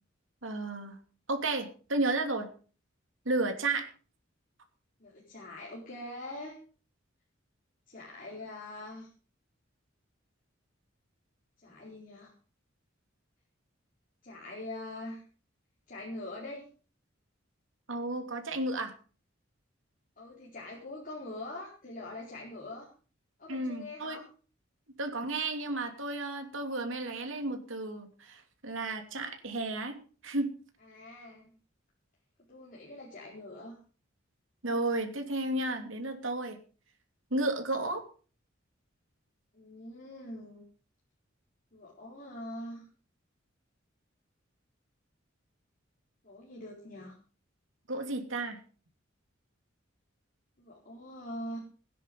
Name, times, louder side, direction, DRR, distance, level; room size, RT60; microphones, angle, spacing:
voice 1, 0.4-1.0 1.3-2.5 3.2-3.9 17.9-18.9 23.5-24.2 25.0-30.0 30.2-30.5 34.6-36.6 37.3-38.0 47.9-48.6, right 2 dB, 75° right, 5 dB, 2.9 m, -32 dB
voice 2, 5.0-6.6 7.9-9.1 11.6-12.3 14.2-15.2 15.9-16.6 20.2-22.9 23.4-24.2 30.8-31.5 32.5-33.8 39.5-40.6 41.7-42.8 46.2-47.1 50.6-51.6, left 1 dB, 45° left, -5 dB, 4.3 m, -43 dB
17.5 x 10.0 x 5.3 m, 0.39 s
head